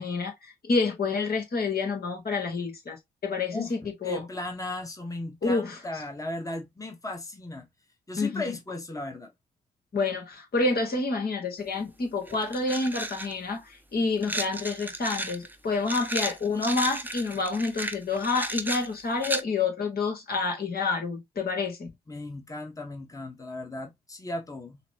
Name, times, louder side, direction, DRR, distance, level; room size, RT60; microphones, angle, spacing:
voice 1, 0.0-4.3 5.4-5.8 8.2-8.4 9.9-21.9, left 3 dB, 50° left, 1.4 m, -28 dB
voice 2, 4.0-7.7 8.1-9.3 22.1-24.8, left 2 dB, 15° left, 1.2 m, -36 dB
sound 1, 11.7-11.8 12.3-13.3 14.2-19.4, right 1 dB, 10° right, 0.8 m, -33 dB
5.7 x 2.1 x 2.8 m
hypercardioid pair, 45°, 20 cm